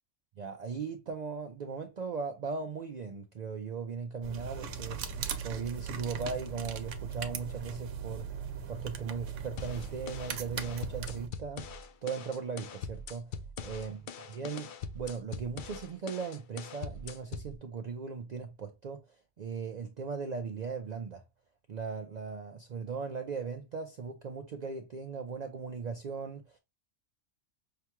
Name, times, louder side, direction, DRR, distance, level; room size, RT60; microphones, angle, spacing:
voice 1, 0.4-5.1 5.4-8.3 8.7-11.7 12.0-13.3 13.6-14.0 14.3-19.0 19.4-21.2 21.7-26.6, right 5 dB, 55° right, 0.5 m, -38 dB
sound 1, 4.2-11.3, right 7 dB, 85° right, 1.0 m, -39 dB
sound 2, 9.6-17.6, left 5 dB, 60° left, 0.5 m, -42 dB
5.8 x 2.3 x 2.8 m
omnidirectional pair, 1.3 m